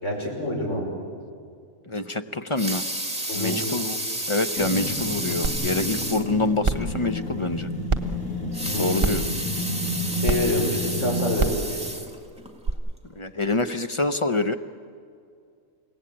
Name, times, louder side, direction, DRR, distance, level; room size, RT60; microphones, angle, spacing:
voice 1, 0.0-0.9 3.3-3.6 8.7-9.1 10.1-11.6, left 2 dB, 60° left, -1 dB, 5.9 m, -26 dB
voice 2, 1.9-2.8 3.3-4.0 4.3-7.7 8.8-9.2 13.1-14.6, left 2 dB, 30° left, 9 dB, 0.6 m, -26 dB
Water tap faucet / Sink (filling or washing) / Liquid, 2.4-6.3 6.8-6.9 7.2-7.3 8.4-12.5 13.1-13.2, right 1 dB, 5° right, 1.8 m, -31 dB
sound 1, 4.6-11.3, left 1 dB, 75° left, 3.6 m, -31 dB
sound 2, 5.4-5.5 6.0-6.1 6.6-6.9 7.9-8.0 9.0-9.3 10.2-10.4 11.4-11.6 12.7-12.8, right 3 dB, 25° right, 1.0 m, -23 dB
30.0 x 17.5 x 8.6 m, 2.3 s
omnidirectional pair, 1.4 m